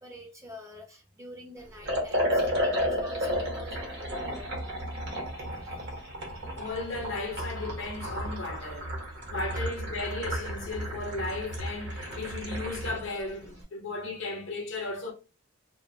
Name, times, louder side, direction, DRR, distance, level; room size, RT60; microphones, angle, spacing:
voice 1, 0.0-4.5 5.6-5.8 9.5-9.7, left 1 dB, 15° right, 0.5 m, -47 dB
Liquid, 1.8-13.1, equal, 55° right, 0.8 m, -32 dB
voice 2, 6.6-15.1, left 3 dB, 60° left, 0.6 m, -35 dB
2.4 x 2.1 x 2.5 m
head